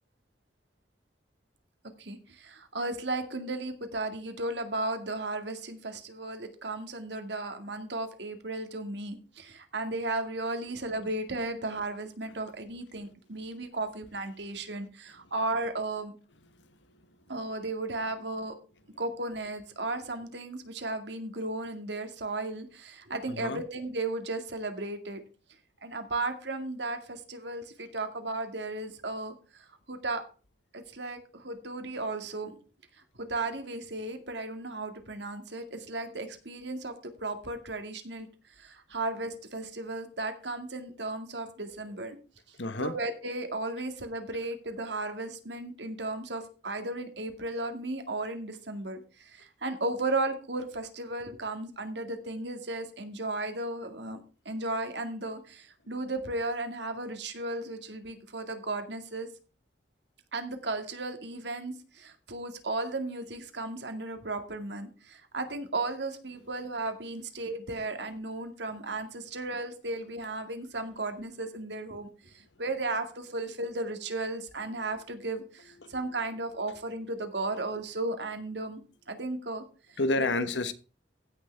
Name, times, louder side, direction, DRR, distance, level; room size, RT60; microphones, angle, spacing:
voice 1, 2.0-16.1 17.3-18.5 19.0-25.2 25.8-30.2 30.7-32.5 33.2-38.3 38.6-42.2 42.8-54.2 54.5-59.3 60.3-72.3 72.6-78.8 79.1-79.6 79.9-80.5, right 2 dB, 70° right, 2.1 m, -35 dB
voice 2, 23.3-23.6 42.6-42.9 75.8-75.9 80.0-80.7, left 2 dB, 80° left, 1.2 m, -29 dB
16.0 x 6.6 x 3.4 m
head